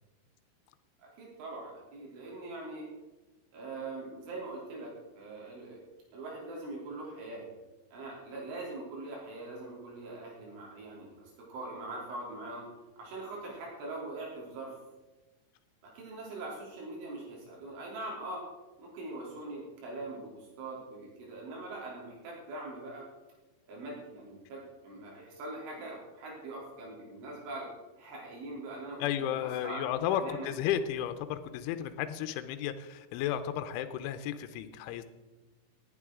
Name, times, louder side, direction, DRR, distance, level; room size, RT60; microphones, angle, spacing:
voice 1, 1.0-2.9 3.5-5.8 6.1-7.5 7.9-12.7 13.0-14.8 15.8-18.4 18.8-23.1 23.7-27.7 28.0-29.3 29.6-30.6, right 2 dB, 85° right, -3 dB, 5.6 m, -42 dB
voice 2, 29.0-35.0, left 10 dB, 90° left, 9 dB, 3.1 m, -33 dB
18.0 x 9.1 x 3.7 m, 1.2 s
omnidirectional pair, 5.4 m